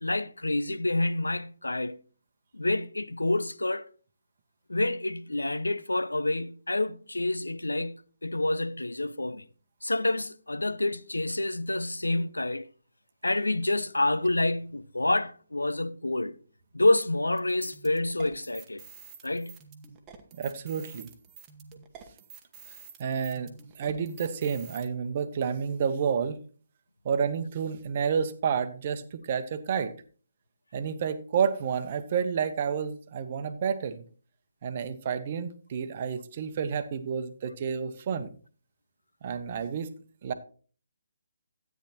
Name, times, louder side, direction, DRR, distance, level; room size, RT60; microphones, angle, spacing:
voice 1, 0.0-2.0 2.5-3.9 4.7-9.5 9.8-12.7 13.2-16.4 16.7-18.8 19.2-19.6, left 2 dB, 80° left, 0.5 m, -28 dB
sound 1, 17.4-24.9, right 6 dB, 15° right, 1.1 m, -49 dB
voice 2, 20.4-21.1 23.0-26.4 27.0-29.9 30.7-34.0 34.6-38.3 39.2-39.9 40.2-40.3, right 7 dB, 40° right, 0.9 m, -30 dB
13.0 x 9.2 x 3.0 m
figure-of-eight pair, 140°, 0 cm